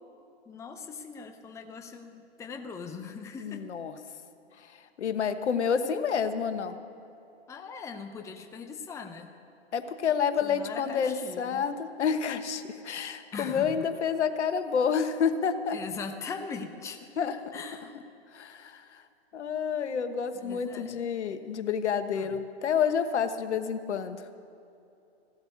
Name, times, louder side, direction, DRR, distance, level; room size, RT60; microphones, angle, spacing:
voice 1, 0.5-3.7 7.5-9.3 10.4-11.7 13.3-13.8 15.7-17.1 17.5-18.0 20.4-21.0 22.1-22.4, left 5 dB, 10° left, 6 dB, 0.6 m, -40 dB
voice 2, 3.4-3.9 5.0-6.8 9.7-15.8 17.2-17.4 18.3-18.8 19.3-24.2, left 7 dB, 75° left, 10 dB, 1.2 m, -29 dB
15.5 x 8.0 x 9.9 m, 2.7 s
hypercardioid pair, 125°, 35 cm